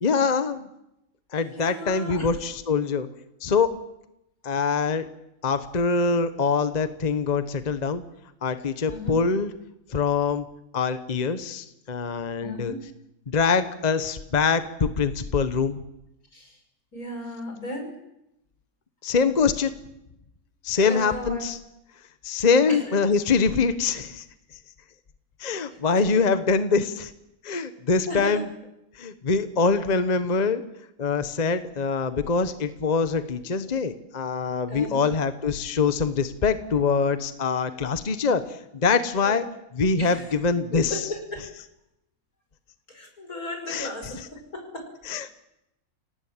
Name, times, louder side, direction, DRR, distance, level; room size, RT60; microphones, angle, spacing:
voice 1, 0.0-0.7 1.3-3.1 3.4-3.7 4.4-5.1 5.4-8.0 8.4-9.5 9.9-10.5 10.7-12.7 13.3-15.8 19.0-19.7 20.6-21.6 22.2-24.2 25.4-27.1 27.4-28.5 29.0-30.6 31.0-39.4 39.7-41.0 43.7-43.9 45.1-45.3, left 5 dB, 30° left, 10 dB, 1.0 m, -24 dB
voice 2, 1.5-2.3 8.9-9.1 12.4-12.8 16.3-16.6 16.9-17.9 20.7-21.4 22.7-22.8 28.1-28.4 34.7-35.0 39.2-39.4 40.0-40.3 40.7-41.4 42.9-44.9, left 1 dB, 75° left, 4 dB, 6.0 m, -35 dB
26.5 x 18.0 x 7.3 m, 0.85 s
omnidirectional pair, 1.5 m